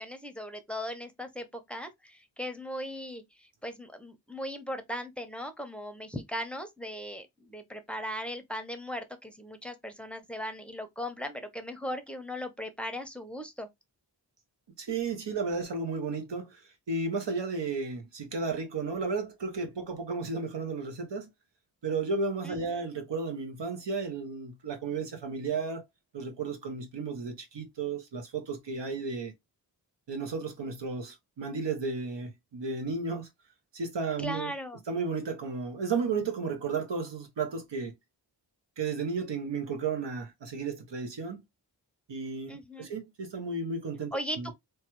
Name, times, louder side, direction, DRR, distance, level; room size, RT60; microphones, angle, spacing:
voice 1, 0.0-13.7 22.4-22.8 34.2-34.8 42.5-42.9 44.1-44.5, equal, 5° left, 0.6 m, -38 dB
voice 2, 14.8-16.6 16.9-21.3 21.8-25.8 26.1-29.3 30.1-33.3 33.7-34.5 34.9-37.9 38.8-41.4 42.1-44.5, right 4 dB, 75° right, 0.9 m, -33 dB
3.2 x 2.2 x 3.0 m
wide cardioid pair, 80°, 43 cm